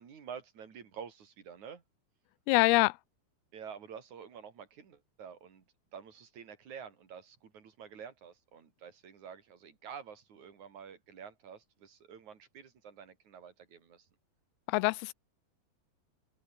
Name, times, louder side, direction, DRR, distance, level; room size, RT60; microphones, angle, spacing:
voice 1, 0.0-1.8 3.5-5.7 5.9-14.1, right 7 dB, 50° right, 4.4 m, -49 dB
voice 2, 2.5-3.0 14.7-15.1, left 23 dB, 85° left, 2.5 m, -25 dB
open air
omnidirectional pair, 4.5 m